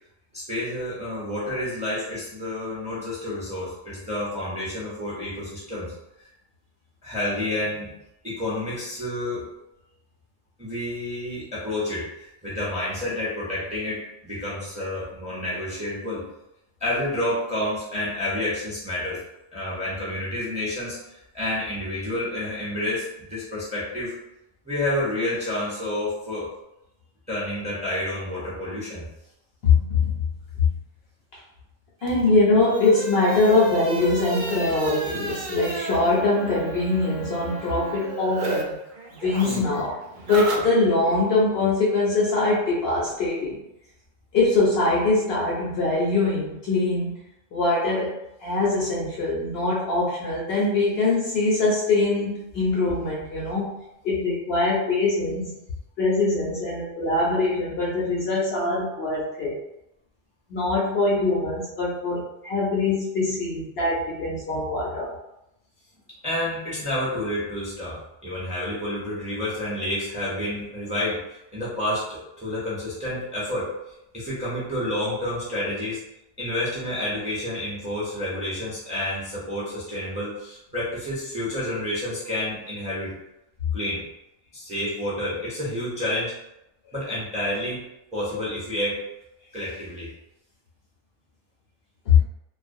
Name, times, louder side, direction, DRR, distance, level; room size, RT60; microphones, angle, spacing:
voice 1, 0.3-5.9 7.0-7.9 8.2-9.5 10.6-16.2 16.8-19.2 19.5-24.1 24.6-26.5 27.3-29.1 66.2-73.7 74.1-76.0 76.4-83.1 83.7-84.1 84.5-86.3 86.9-87.8 88.1-89.0 89.5-90.1, left 1 dB, 10° right, -8 dB, 0.5 m, -29 dB
voice 2, 29.6-30.2 32.0-38.8 39.2-40.0 40.3-43.6 44.3-47.1 47.5-48.1 48.4-53.7 54.0-55.5 56.0-59.6 60.5-65.1 92.1-92.2, left 3 dB, 60° left, -5 dB, 0.7 m, -22 dB
sound 1, 32.0-38.6 38.9-41.2, right 4 dB, 70° right, 0.4 m, -33 dB
2.4 x 2.0 x 2.5 m, 0.86 s
omnidirectional pair, 1.3 m